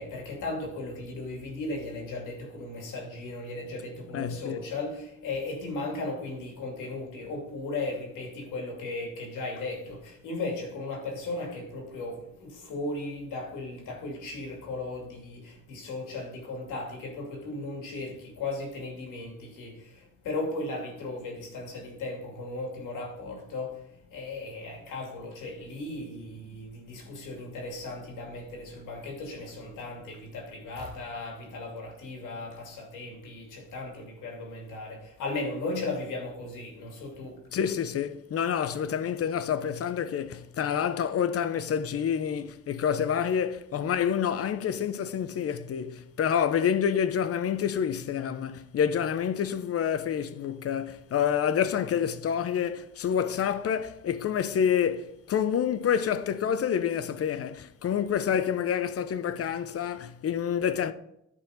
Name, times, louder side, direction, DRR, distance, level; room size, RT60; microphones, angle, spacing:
voice 1, 0.0-19.9 20.2-23.8 24.1-37.4, left 2 dB, 85° left, 2.5 m, -36 dB
voice 2, 4.1-4.6 37.5-60.9, left 8 dB, 50° left, 0.7 m, -28 dB
11.0 x 4.1 x 5.0 m
cardioid pair, 90°, 30 cm